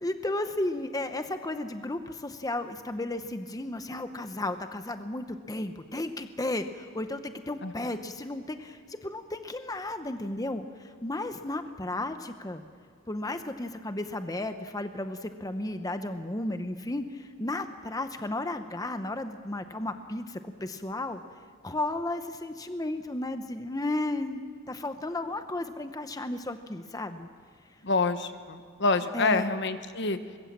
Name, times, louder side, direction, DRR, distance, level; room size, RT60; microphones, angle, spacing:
voice 1, 0.0-12.6 13.1-21.2 21.6-27.3 29.1-29.5, left 2 dB, 20° left, 8 dB, 0.8 m, -34 dB
voice 2, 27.8-30.2, left 3 dB, 60° left, 10 dB, 1.2 m, -27 dB
24.5 x 22.0 x 7.4 m, 2.1 s
head